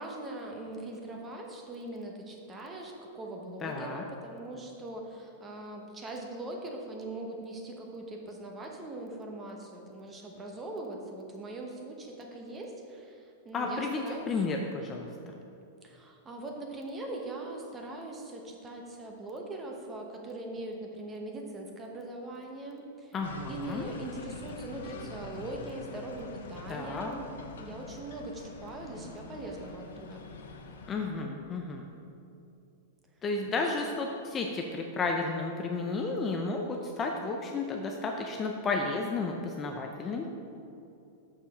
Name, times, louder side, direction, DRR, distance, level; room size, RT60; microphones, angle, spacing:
voice 1, 0.0-14.5 15.8-23.1 23.5-30.3 33.5-33.9, right 2 dB, 15° right, 1 dB, 1.0 m, -41 dB
voice 2, 3.6-4.0 13.5-15.3 23.1-23.9 26.7-27.2 30.9-31.8 33.2-40.3, left 3 dB, 20° left, 2 dB, 0.5 m, -32 dB
sound 1, 23.2-31.1, left 4 dB, 90° left, 0.8 m, -45 dB
6.6 x 5.8 x 5.6 m, 2.7 s
supercardioid pair, 155°, 0 cm